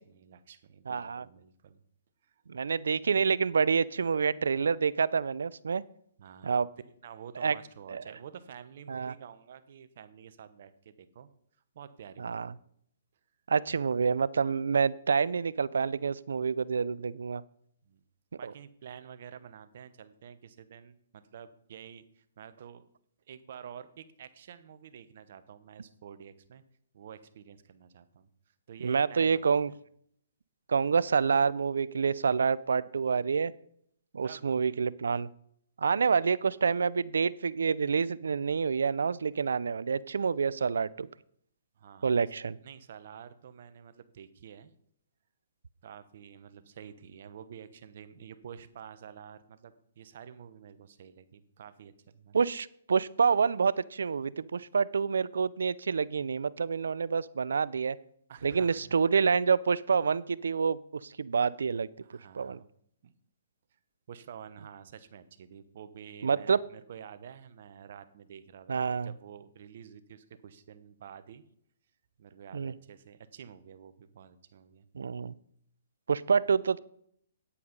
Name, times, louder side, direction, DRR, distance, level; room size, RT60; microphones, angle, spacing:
voice 1, 0.0-1.8 2.2-2.7 6.2-6.6 7.0-11.3 11.7-12.6 17.9-18.0 18.3-22.8 23.3-26.6 26.9-29.8 34.2-34.6 41.8-42.2 42.6-44.7 45.8-52.4 58.3-59.0 62.0-62.7 63.0-63.1 64.1-71.4 72.2-74.9, right 8 dB, 60° right, 13 dB, 1.0 m, -49 dB
voice 2, 0.9-1.2 2.5-5.8 6.4-6.7 7.4-7.5 7.9-8.0 8.9-9.1 12.2-12.5 13.5-17.4 18.4-18.5 28.8-29.7 30.7-33.5 34.1-35.3 35.8-41.1 42.0-42.6 52.3-58.0 58.4-61.9 62.3-62.6 66.2-66.6 68.7-69.1 72.5-72.7 74.9-75.3 76.1-76.8, right 5 dB, 80° right, 20 dB, 0.5 m, -27 dB
9.8 x 8.4 x 5.2 m, 0.66 s
hypercardioid pair, 135°, 0 cm